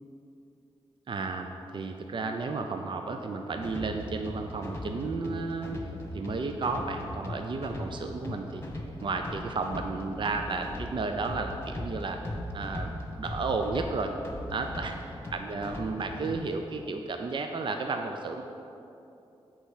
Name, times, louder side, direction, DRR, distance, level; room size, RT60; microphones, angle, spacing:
voice 1, 1.1-5.8 6.1-8.6 9.0-12.2 12.5-12.9 13.2-14.1 14.5-14.9 15.3-18.4, right 3 dB, 50° right, 4 dB, 0.5 m, -32 dB
sound 1, 3.5-16.6, left 1 dB, 25° left, 1.3 m, -39 dB
8.5 x 4.7 x 7.3 m, 2.9 s
cardioid pair, 70°, 11 cm